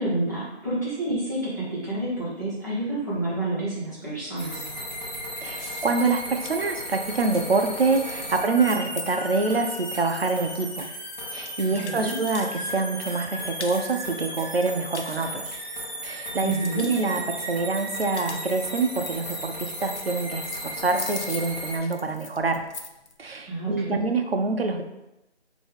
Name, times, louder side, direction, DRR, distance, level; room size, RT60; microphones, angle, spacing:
voice 1, 0.0-4.6 11.8-12.1 16.4-16.9 23.5-24.0, right 2 dB, 15° left, -12 dB, 0.9 m, -28 dB
sound 1, 4.4-21.8, equal, 40° left, 1.0 m, -35 dB
voice 2, 5.4-10.9 11.3-15.5 16.0-22.6 23.2-24.8, right 3 dB, 60° right, 6 dB, 0.5 m, -26 dB
sound 2, 5.6-12.7 13.0-14.0 14.4-16.0 16.4-17.0 17.7-23.1, left 5 dB, 75° left, 0.6 m, -41 dB
4.0 x 2.6 x 3.4 m, 0.93 s
figure-of-eight pair, 170°, 34 cm